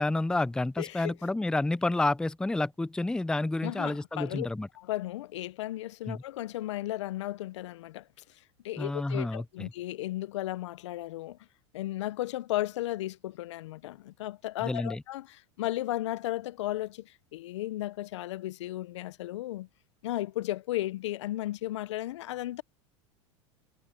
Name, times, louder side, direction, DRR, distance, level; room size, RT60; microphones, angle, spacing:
voice 1, 0.0-4.7 6.1-6.2 8.8-9.7 14.6-15.0, left 2 dB, 5° left, 0.5 m, -29 dB
voice 2, 0.8-1.1 3.6-4.5 4.8-8.1 8.6-11.4 11.7-19.7 20.0-22.6, left 15 dB, 80° left, 0.8 m, -35 dB
hypercardioid pair, 95°, 15 cm